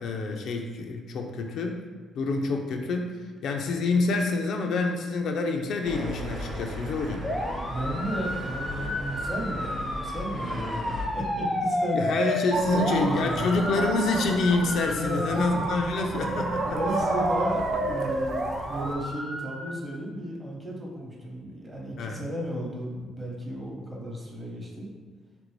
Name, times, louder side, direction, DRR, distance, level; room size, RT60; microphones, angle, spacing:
voice 1, 0.0-1.8 2.1-7.3 11.9-16.8 22.0-22.2, left 3 dB, 75° left, 3 dB, 0.3 m, -27 dB
sound 1, 5.8-11.1, equal, 85° right, 0.9 m, -36 dB
sound 2, 7.2-19.7, left 1 dB, 15° left, 0.5 m, -32 dB
voice 2, 7.7-12.0 12.6-13.5 14.8-15.7 16.7-24.9, equal, 25° right, -2 dB, 0.8 m, -34 dB
sound 3, 12.5-18.9, right 4 dB, 70° right, 0.3 m, -32 dB
2.9 x 2.6 x 3.1 m, 1.3 s
cardioid pair, 90°, 0 cm